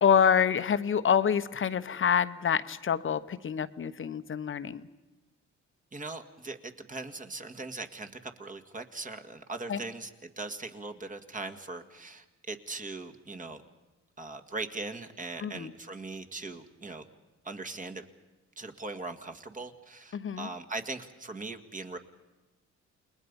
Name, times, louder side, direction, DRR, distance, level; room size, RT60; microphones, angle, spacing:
voice 1, 0.0-4.8 9.7-9.8 15.4-15.7 20.1-20.5, left 7 dB, 40° left, 12 dB, 1.0 m, -26 dB
voice 2, 5.9-13.6 14.2-17.1 17.4-18.0 18.6-22.0, right 3 dB, 25° right, 7 dB, 1.9 m, -40 dB
29.0 x 20.5 x 5.4 m, 1.1 s
cardioid pair, 90°, 30 cm